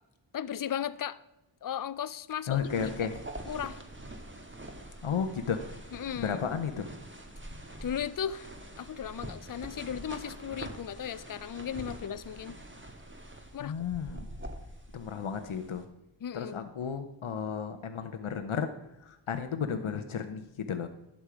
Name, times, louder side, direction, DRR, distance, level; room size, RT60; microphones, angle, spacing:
voice 1, 0.3-1.2 1.6-2.7 3.5-3.8 5.9-6.4 7.8-8.5 8.8-12.6 13.5-13.8 16.2-16.7, left 9 dB, 45° left, 15 dB, 0.5 m, -36 dB
voice 2, 2.5-3.2 5.0-5.6 6.2-6.9 13.6-14.3 14.9-15.9 16.3-18.7 19.0-20.9, left 7 dB, 90° left, 7 dB, 0.8 m, -33 dB
sound 1, 2.5-15.8, right 1 dB, 25° right, 1.5 m, -45 dB
11.5 x 7.4 x 4.9 m, 0.95 s
wide cardioid pair, 55°, 47 cm